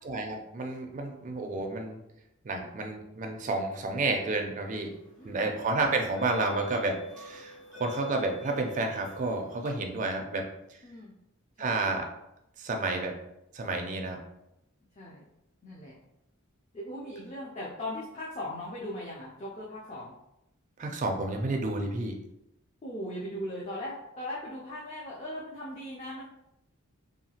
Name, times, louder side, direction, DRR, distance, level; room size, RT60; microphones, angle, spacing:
voice 1, 0.0-2.0 2.4-4.9 5.2-7.5 7.8-10.8 11.6-12.1 12.6-13.1 13.5-14.2 20.8-22.2, right 2 dB, 35° right, 3 dB, 0.4 m, -31 dB
sound 1, 4.9-5.1 5.9-9.7, right 1 dB, 75° left, 1.0 m, -43 dB
voice 2, 5.2-5.5 10.8-11.2 11.6-12.1 14.9-15.3 15.6-16.0 16.7-20.1 22.8-26.3, left 1 dB, 30° left, -5 dB, 0.4 m, -39 dB
2.8 x 2.3 x 2.8 m, 0.84 s
head